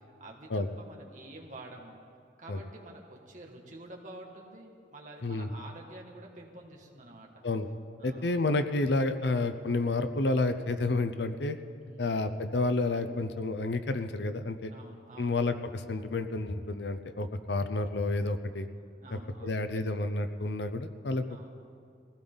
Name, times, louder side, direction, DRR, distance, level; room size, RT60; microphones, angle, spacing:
voice 1, 0.2-2.0 2.4-7.4 8.0-8.3 11.8-12.1 14.7-15.4 19.0-19.6 20.0-20.1 21.2-21.5, right 1 dB, 45° right, 0 dB, 1.9 m, -48 dB
voice 2, 8.0-11.6 12.0-14.7 15.2-18.7 19.1-21.2, left 2 dB, 75° left, 9 dB, 0.7 m, -30 dB
22.0 x 16.0 x 4.0 m, 2.4 s
head